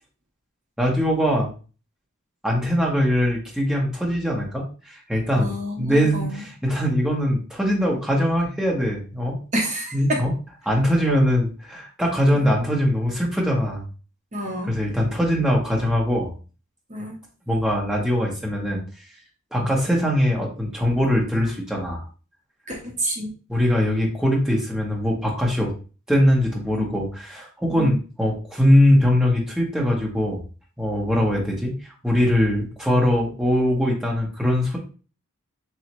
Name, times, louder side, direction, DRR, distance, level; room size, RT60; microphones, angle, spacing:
voice 1, 0.8-1.5 2.4-9.4 9.9-10.3 10.6-13.9 14.7-16.3 17.5-18.8 19.5-22.1 23.5-25.7 26.1-30.4 30.8-34.8, equal, 5° right, -3 dB, 0.9 m, -22 dB
voice 2, 5.4-6.4 9.5-10.2 11.1-11.4 12.3-12.5 14.3-14.7 16.9-17.2 19.6-19.7 22.7-23.3 26.7-26.9 27.7-28.0, equal, 35° right, 0 dB, 0.7 m, -29 dB
4.1 x 3.1 x 2.9 m, 0.36 s
head